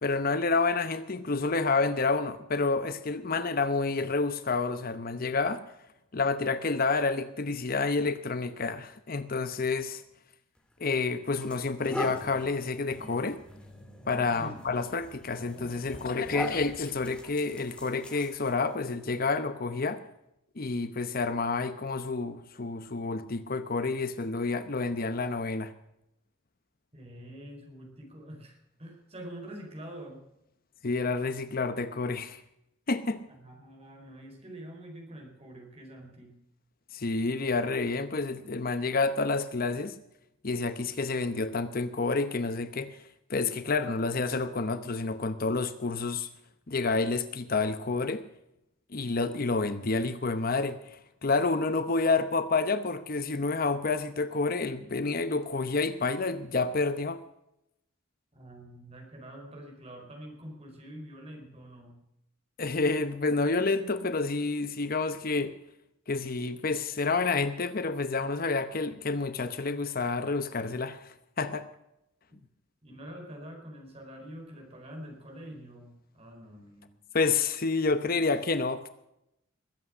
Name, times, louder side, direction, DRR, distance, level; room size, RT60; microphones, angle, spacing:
voice 1, 0.0-5.6 6.1-10.0 10.8-13.4 14.1-20.0 20.6-25.7 30.8-32.4 32.9-33.2 36.9-40.0 40.4-43.0 43.3-46.3 46.7-48.3 48.9-57.2 62.6-65.6 66.1-71.7 77.1-78.9, left 3 dB, 45° left, 11 dB, 0.8 m, -29 dB
sound 1, 10.6-10.7 11.3-18.7, equal, 5° left, 3.3 m, -41 dB
voice 2, 26.9-30.2 33.3-36.4 58.3-62.0 72.8-76.9, right 1 dB, 30° right, 2 dB, 4.4 m, -46 dB
21.0 x 8.6 x 6.2 m, 0.83 s
head